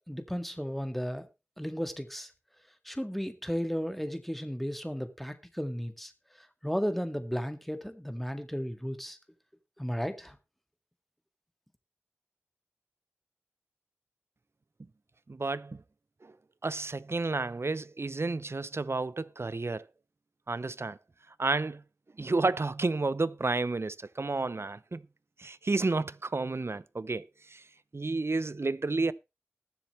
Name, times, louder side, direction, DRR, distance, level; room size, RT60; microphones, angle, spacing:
voice 1, 0.1-1.3 1.6-2.3 2.9-6.1 6.6-9.2 9.8-10.4, equal, 5° left, 1.9 m, -34 dB
voice 2, 15.3-15.8 16.2-16.3 16.6-19.8 20.5-21.0 21.4-21.8 22.2-25.0 25.4-27.6 27.9-29.1, right 3 dB, 60° right, 0.5 m, -31 dB
20.0 x 7.4 x 3.2 m
wide cardioid pair, 40°, 5 cm